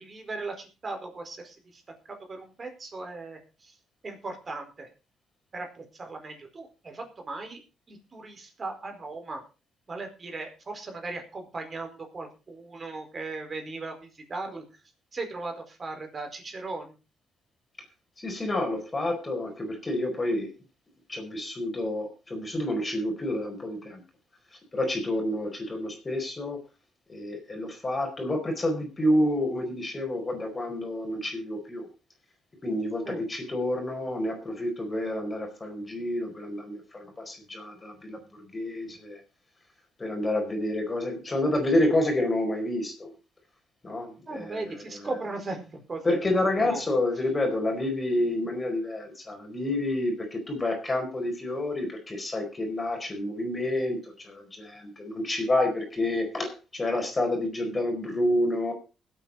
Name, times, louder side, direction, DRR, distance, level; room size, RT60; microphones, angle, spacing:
voice 1, 0.0-1.8 2.1-3.7 4.0-4.9 5.5-7.6 7.9-9.4 9.9-14.6 15.1-16.9 33.0-33.2 44.3-46.2 46.6-46.8, right 3 dB, 35° right, 4 dB, 4.5 m, -38 dB
voice 2, 18.2-20.5 21.1-24.0 24.7-26.6 27.1-31.9 32.6-39.2 40.0-43.1 43.8-45.3 46.0-58.7, left 1 dB, 25° left, 3 dB, 4.6 m, -29 dB
20.0 x 8.4 x 4.1 m, 0.31 s
cardioid pair, 90°, 0 cm